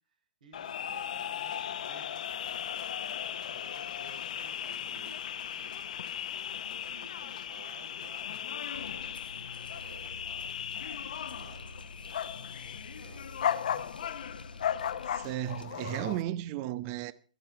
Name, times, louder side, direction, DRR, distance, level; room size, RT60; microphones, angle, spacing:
voice 1, 0.1-2.3 3.5-5.9 6.5-13.7, right 3 dB, 65° right, 5.3 m, -56 dB
sound 1, 0.5-16.2, left 9 dB, 60° left, 1.1 m, -37 dB
sound 2, 8.7-15.7, left 3 dB, 85° left, 1.0 m, -48 dB
voice 2, 15.1-17.1, right 14 dB, 35° right, 0.8 m, -34 dB
17.0 x 13.0 x 4.6 m
figure-of-eight pair, 115°, 5 cm